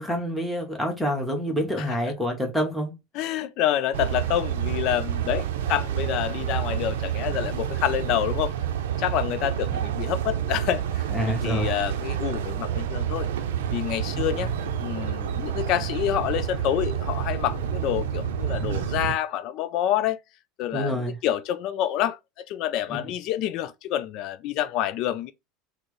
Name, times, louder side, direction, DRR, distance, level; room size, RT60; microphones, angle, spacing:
voice 1, 0.0-2.9 9.7-9.8 11.1-11.8 14.2-14.3 20.7-21.2 22.9-23.0, equal, ahead, 1.0 m, -27 dB
voice 2, 3.1-8.5 9.0-13.3 13.7-14.5 14.8-20.2 20.6-25.3, left 12 dB, 60° left, 0.3 m, -28 dB
sound 1, 3.9-19.1, right 9 dB, 85° right, 0.5 m, -29 dB
4.3 x 2.0 x 3.1 m
supercardioid pair, 105°, 0 cm